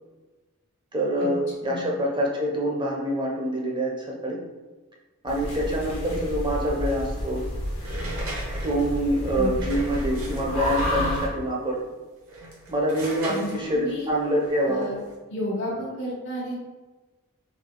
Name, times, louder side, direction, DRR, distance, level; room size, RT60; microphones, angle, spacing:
voice 1, 0.9-4.4 5.2-7.4 8.6-11.8 12.7-15.0, equal, 20° right, -3 dB, 0.8 m, -26 dB
sound 1, 5.3-11.3, equal, 80° left, 1.4 m, -30 dB
sound 2, 7.8-11.5 12.2-15.1, right 1 dB, 70° right, 1.3 m, -37 dB
voice 2, 13.3-14.1 14.7-14.9 15.3-16.6, left 1 dB, 60° left, -6 dB, 1.3 m, -32 dB
3.9 x 3.5 x 3.8 m, 1.2 s
head